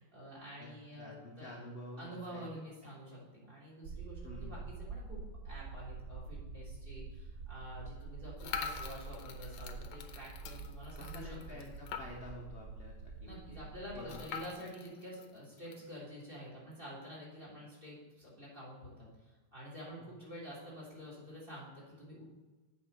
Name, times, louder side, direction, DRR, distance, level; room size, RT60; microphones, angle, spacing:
voice 1, 0.0-1.5 2.0-11.3 13.2-22.2, equal, 25° right, -5 dB, 3.5 m, -48 dB
voice 2, 1.0-2.4 4.2-4.6 11.0-14.1, left 1 dB, 40° left, -1 dB, 0.9 m, -49 dB
sound 1, 3.8-14.3, right 4 dB, 65° right, 0.9 m, -47 dB
sound 2, 8.4-12.4 12.8-12.9 13.1-13.2 14.1-15.8, left 6 dB, 90° left, 1.5 m, -44 dB
8.3 x 4.7 x 6.4 m, 1.2 s
omnidirectional pair, 2.1 m